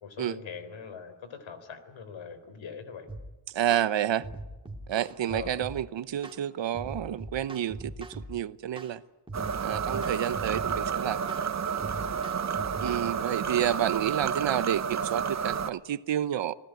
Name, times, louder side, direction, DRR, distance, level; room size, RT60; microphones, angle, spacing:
voice 1, 0.0-3.1 5.3-5.7 13.0-13.3, left 6 dB, 80° left, 3.9 m, -42 dB
sound 1, 3.1-3.3 3.7-3.9 4.2-5.8 6.2-6.4 6.7-8.3 8.8-8.9 9.3-10.9 11.3-11.5 11.8-13.0, right 1 dB, 10° right, 2.4 m, -41 dB
voice 2, 3.5-4.3 4.9-9.0 9.6-11.2 12.8-16.6, right 11 dB, 70° right, 1.0 m, -29 dB
sound 2, 9.3-15.7, right 7 dB, 35° right, 0.9 m, -30 dB
27.5 x 18.0 x 9.2 m
wide cardioid pair, 145°, 45 cm